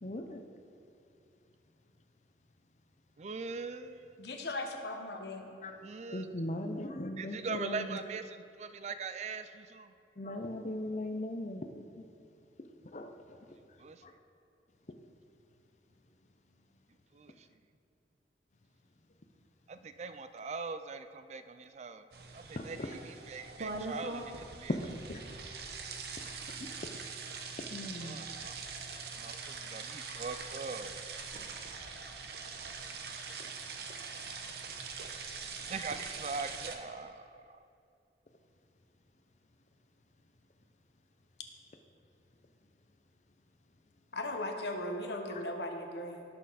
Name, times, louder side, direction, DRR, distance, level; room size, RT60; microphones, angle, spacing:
voice 1, 0.0-0.4 5.6-5.7 6.1-8.0 10.2-11.7 12.0-12.1 12.9-13.1 14.0-14.1 22.6-22.7 24.7-24.8 25.1-25.2 27.7-28.2, left 1 dB, 40° left, 5 dB, 0.6 m, -38 dB
voice 2, 3.2-4.2 5.8-6.4 7.2-9.9 13.8-14.0 17.1-17.5 19.7-22.0 22.3-24.7 27.8-28.6 29.2-31.0 35.7-37.5, right 4 dB, 40° right, 11 dB, 0.4 m, -42 dB
voice 3, 4.2-5.4 44.1-46.2, left 1 dB, 70° left, 4 dB, 1.2 m, -38 dB
sound 1, 22.1-36.8, right 4 dB, 65° right, 0.9 m, -43 dB
17.5 x 6.6 x 4.1 m, 2.6 s
head